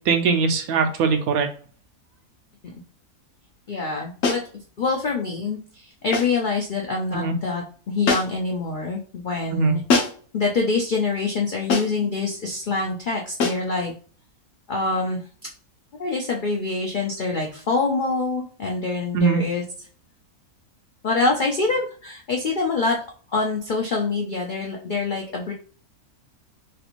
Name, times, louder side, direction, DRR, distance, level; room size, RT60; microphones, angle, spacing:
voice 1, 0.1-1.5 7.1-7.4 9.5-9.8 19.1-19.4, right 5 dB, 80° right, 6 dB, 1.0 m, -21 dB
voice 2, 3.7-4.4 4.8-9.8 10.3-13.9 14.7-15.2 16.0-19.6 21.0-23.0 23.3-25.5, left 3 dB, 85° left, 0 dB, 0.4 m, -25 dB
sound 1, 4.2-4.5 6.1-6.4 8.1-8.5 9.9-10.3 11.7-12.1 13.4-13.7, left 4 dB, 65° left, 1.1 m, -23 dB
3.1 x 3.0 x 2.5 m, 0.42 s
omnidirectional pair, 1.6 m